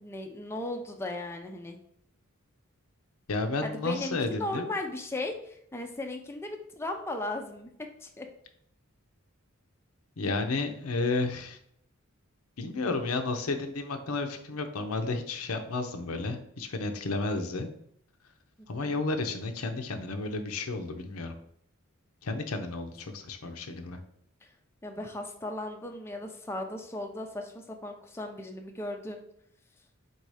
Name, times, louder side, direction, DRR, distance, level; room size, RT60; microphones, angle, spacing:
voice 1, 0.0-1.8 3.6-7.7 8.0-8.3 18.8-19.0 24.8-29.2, left 2 dB, 10° left, 3 dB, 0.4 m, -36 dB
voice 2, 3.3-4.7 10.2-11.6 12.6-17.7 18.7-21.3 22.2-24.0, left 3 dB, 85° left, 6 dB, 0.6 m, -32 dB
4.1 x 2.7 x 4.7 m, 0.69 s
head